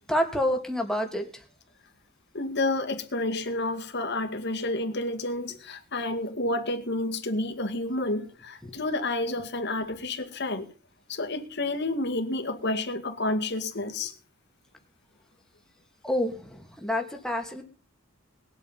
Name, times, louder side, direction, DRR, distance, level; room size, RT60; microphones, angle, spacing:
voice 1, 0.1-1.4 8.6-8.7 16.0-17.6, equal, 5° left, 2.6 m, -28 dB
voice 2, 2.3-10.7 11.1-14.1, left 2 dB, 60° left, 2.3 m, -30 dB
20.5 x 8.5 x 5.6 m
head